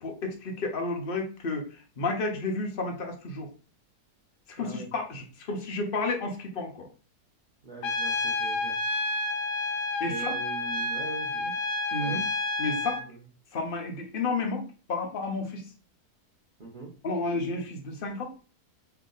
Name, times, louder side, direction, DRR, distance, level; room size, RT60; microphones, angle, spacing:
voice 1, 0.0-3.5 4.5-6.9 10.0-10.3 11.9-12.2 12.6-13.0 13.5-15.7 17.0-18.3, left 3 dB, 45° left, 3 dB, 0.8 m, -31 dB
voice 2, 4.6-4.9 7.6-8.8 10.1-11.5 12.0-12.2 12.8-13.2 16.6-16.9, right 4 dB, 35° right, -5 dB, 1.0 m, -42 dB
Trumpet, 7.8-13.1, left 2 dB, 85° left, 1.2 m, -30 dB
3.4 x 2.7 x 3.8 m, 0.36 s
omnidirectional pair, 1.7 m